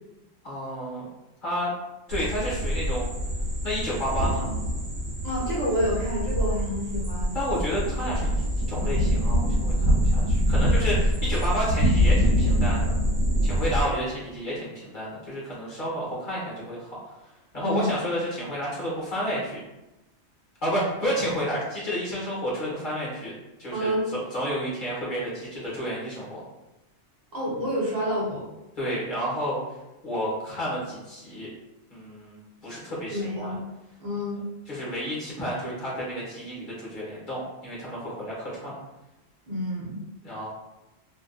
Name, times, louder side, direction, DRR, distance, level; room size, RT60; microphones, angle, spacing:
voice 1, 0.4-1.1 1.4-1.7 2.1-3.1 3.6-4.5 7.3-12.9 13.4-17.1 17.5-19.6 20.6-23.3 23.6-26.4 28.8-29.6 30.0-31.5 31.9-33.5 34.7-38.7 40.2-40.5, equal, 50° left, -6 dB, 0.9 m, -31 dB
sound 1, 2.1-13.9, equal, 85° right, 1.0 m, -24 dB
voice 2, 5.2-7.4 17.6-17.9 23.7-24.0 27.3-28.5 33.1-33.6 34.0-34.4 39.5-40.0, equal, 40° right, -6 dB, 0.8 m, -28 dB
2.6 x 2.3 x 2.4 m, 0.97 s
omnidirectional pair, 1.2 m